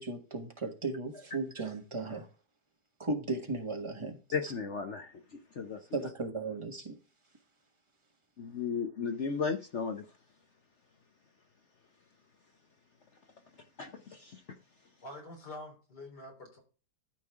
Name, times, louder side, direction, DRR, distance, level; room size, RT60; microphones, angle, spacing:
voice 1, 0.0-2.3 3.0-4.2 5.9-7.0, right 3 dB, 20° right, 1.5 m, -36 dB
voice 2, 4.3-6.1 8.4-10.1 13.8-14.4, left 5 dB, 50° left, 1.0 m, -35 dB
voice 3, 15.0-16.6, left 1 dB, 85° left, 4.4 m, -46 dB
13.0 x 5.3 x 3.6 m
omnidirectional pair, 1.7 m